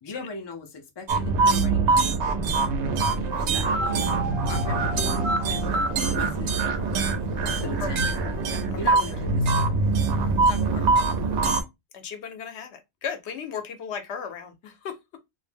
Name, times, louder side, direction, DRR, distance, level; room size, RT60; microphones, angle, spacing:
voice 1, 0.0-2.2 3.1-4.1 4.4-6.6 7.6-8.1 8.7-9.7 10.4-10.8, left 4 dB, 45° left, 0.3 m, -38 dB
sound 1, 1.1-11.6, right 3 dB, 80° right, 0.9 m, -24 dB
sound 2, 3.8-6.4 7.6-8.9, right 3 dB, 35° right, 0.5 m, -38 dB
voice 2, 7.8-8.1 8.5-9.0 9.6-9.7 11.9-14.9, left 6 dB, 75° left, 0.9 m, -36 dB
2.4 x 2.0 x 3.2 m
omnidirectional pair, 1.1 m